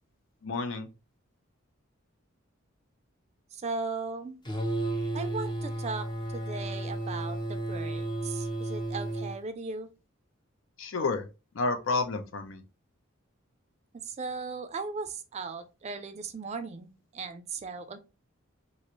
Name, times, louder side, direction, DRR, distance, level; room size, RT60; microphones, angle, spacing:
voice 1, 0.4-0.9 10.8-11.3 11.5-12.6, left 3 dB, 70° left, 0.5 m, -30 dB
voice 2, 3.5-4.4 5.1-6.1 6.3-9.9 14.0-18.0, right 4 dB, 35° right, 0.4 m, -37 dB
sound 1, 4.4-9.4, right 1 dB, 25° left, 0.5 m, -33 dB
3.0 x 2.5 x 2.8 m
head